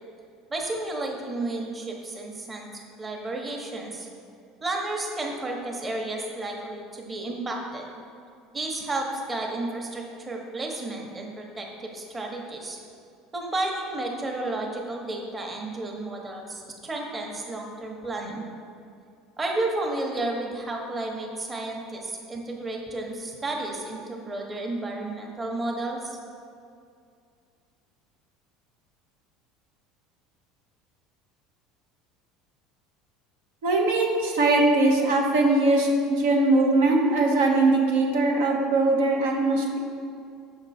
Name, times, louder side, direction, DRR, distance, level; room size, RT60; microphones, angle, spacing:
voice 1, 0.5-2.7 3.0-4.1 4.6-7.8 8.5-12.8 13.3-18.4 19.4-26.2, right 2 dB, 20° right, 0 dB, 1.0 m, -32 dB
voice 2, 33.6-39.8, right 2 dB, 85° right, -1 dB, 0.9 m, -21 dB
6.4 x 4.4 x 4.2 m, 2.4 s
supercardioid pair, 100°, 0 cm